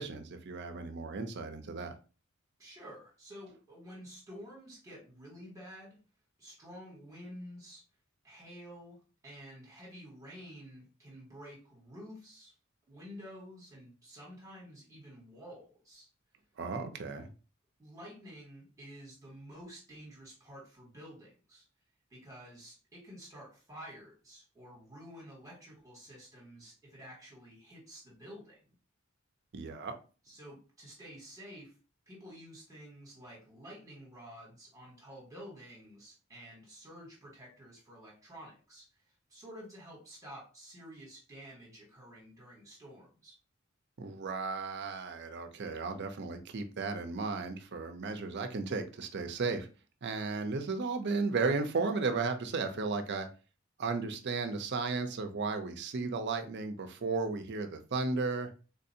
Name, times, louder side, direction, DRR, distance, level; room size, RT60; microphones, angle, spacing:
voice 1, 0.0-1.9 16.6-17.3 29.5-30.0 44.0-49.7 50.0-53.3 53.8-58.5, right 4 dB, 55° right, 0.5 m, -34 dB
voice 2, 2.6-6.0 6.4-7.8 8.2-9.0 9.2-12.5 12.9-16.1 17.8-21.6 22.1-28.6 30.2-31.7 32.1-43.4, equal, 15° right, 1.4 m, -50 dB
3.8 x 2.5 x 2.7 m
head